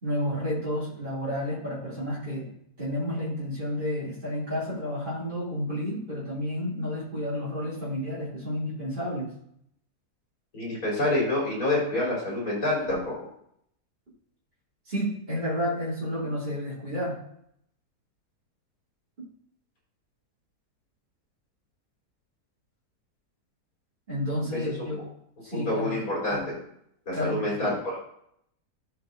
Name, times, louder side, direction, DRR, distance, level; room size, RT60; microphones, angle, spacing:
voice 1, 0.0-2.5 2.8-9.3 14.9-17.2 24.1-25.0 25.4-26.0 27.1-27.7, equal, 30° right, -10 dB, 2.6 m, -31 dB
voice 2, 10.5-13.1 24.5-24.6 25.5-26.6 27.1-28.0, left 1 dB, 60° left, -5 dB, 4.0 m, -27 dB
14.0 x 4.8 x 2.5 m, 0.71 s
omnidirectional pair, 1.7 m